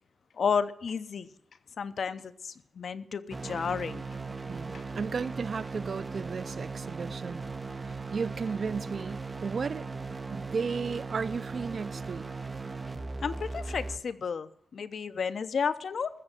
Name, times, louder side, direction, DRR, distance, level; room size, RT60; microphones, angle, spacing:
voice 1, 0.3-1.3 1.8-4.0 4.7-4.8 13.2-16.1, left 6 dB, 65° left, 0.7 m, -32 dB
sound 1, 3.3-14.0, right 3 dB, 30° right, 1.1 m, -38 dB
voice 2, 4.5-7.5 7.9-9.9 10.3-12.3, right 5 dB, 55° right, 0.4 m, -34 dB
14.5 x 7.3 x 7.6 m
wide cardioid pair, 135°, 0 cm